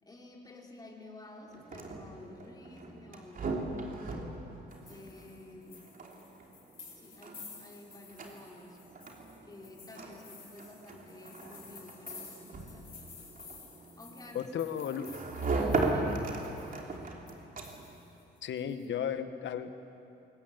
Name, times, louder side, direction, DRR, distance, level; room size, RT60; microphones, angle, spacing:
voice 1, 0.0-4.4 4.8-6.0 6.9-8.8 9.4-12.9 13.8-17.0, left 2 dB, 20° left, -1 dB, 4.0 m, -52 dB
sound 1, 1.5-18.0, right 3 dB, 45° right, 3.2 m, -38 dB
sound 2, 4.7-16.9 17.3-17.4 17.6-18.9, left 5 dB, 45° left, 7.8 m, -53 dB
voice 2, 14.3-15.1 18.4-19.8, left 8 dB, 70° left, 10 dB, 1.4 m, -34 dB
22.0 x 19.0 x 9.1 m, 2.8 s
cardioid pair, 90°, 20 cm